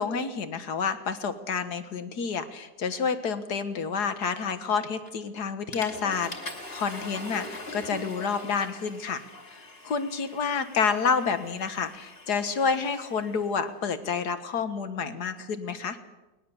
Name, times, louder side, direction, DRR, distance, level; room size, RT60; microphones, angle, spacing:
voice 1, 0.0-6.3 6.7-9.2 9.8-16.0, left 5 dB, 60° left, 10 dB, 2.0 m, -29 dB
Water / Toilet flush, 5.1-5.3 5.7-13.6, left 2 dB, 30° left, 2.7 m, -42 dB
20.5 x 20.0 x 7.1 m, 1.1 s
omnidirectional pair, 2.0 m